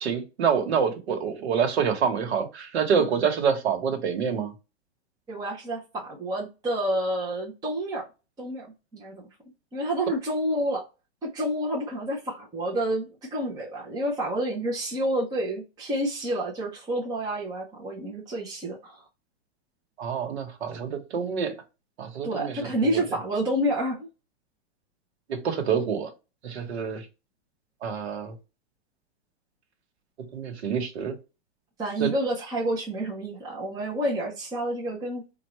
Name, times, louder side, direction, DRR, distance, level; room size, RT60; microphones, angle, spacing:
voice 1, 0.0-4.5 20.0-21.5 22.0-23.0 25.3-26.1 26.4-27.0 27.8-28.3 30.3-31.2 32.0-32.1, right 6 dB, 80° right, 1.3 m, -27 dB
voice 2, 5.3-8.1 8.4-8.7 8.9-9.2 9.7-10.8 11.2-19.0 22.2-24.1 31.8-35.2, right 1 dB, 10° right, 0.8 m, -29 dB
4.5 x 2.5 x 3.1 m
supercardioid pair, 155°, 32 cm